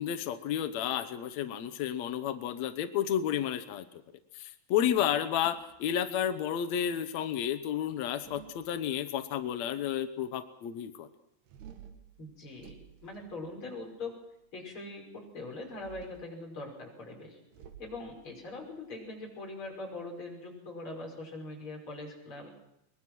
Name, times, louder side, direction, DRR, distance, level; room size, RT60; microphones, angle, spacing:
voice 1, 0.0-3.8 4.3-11.1, left 10 dB, 90° left, 10 dB, 1.5 m, -31 dB
sound 1, 5.1-6.5 7.8-9.2 11.5-14.0 15.6-16.4 17.5-19.9, right 9 dB, 75° right, 3.7 m, -54 dB
voice 2, 12.2-14.2 14.5-17.4 17.8-22.5, left 2 dB, 30° left, 0 dB, 6.3 m, -42 dB
22.5 x 21.5 x 6.2 m, 0.79 s
omnidirectional pair, 4.7 m